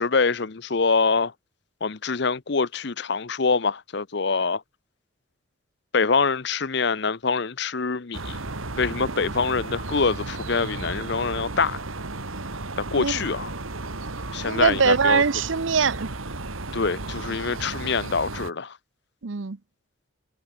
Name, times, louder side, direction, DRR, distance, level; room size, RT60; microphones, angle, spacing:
voice 1, 0.0-1.3 1.8-4.6 5.9-8.4 8.8-11.8 12.9-13.5 14.3-15.2 16.7-18.8, left 4 dB, 55° left, 0.7 m, -25 dB
sound 1, 8.1-18.5, right 2 dB, 85° right, 2.4 m, -34 dB
voice 2, 14.4-16.1 19.2-19.6, right 5 dB, 65° right, 0.7 m, -22 dB
head